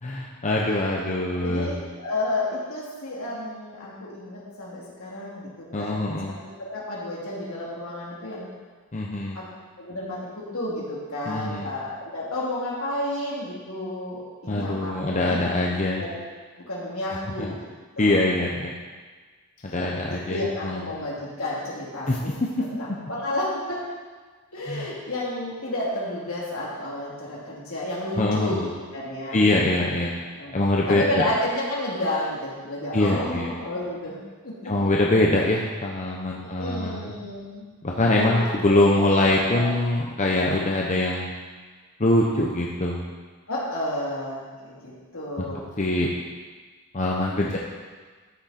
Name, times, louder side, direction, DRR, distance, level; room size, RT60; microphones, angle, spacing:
voice 1, 0.0-1.8 5.7-6.4 8.9-9.4 11.3-11.7 14.5-16.0 17.2-17.5 18.0-18.8 19.6-20.8 22.1-22.2 24.7-24.9 28.2-28.7 29.3-30.1 30.5-31.2 32.9-33.5 34.6-37.2 37.8-41.3 42.0-43.0 45.4-45.5 45.8-46.1 46.9-47.6, left 2 dB, 35° left, -2 dB, 0.8 m, -23 dB
voice 2, 0.6-1.1 1.4-6.1 6.6-8.5 9.3-9.4 9.8-14.9 15.3-15.4 16.0-16.2 16.7-17.6 18.0-18.2 19.6-19.7 20.1-22.3 22.6-23.8 24.5-29.5 30.3-30.6 30.9-34.7 36.3-37.7 38.0-38.8 39.4-39.7 43.5-45.6 47.4-47.6, left 1 dB, 70° left, -6 dB, 2.9 m, -31 dB
13.0 x 6.4 x 4.3 m, 1.5 s
head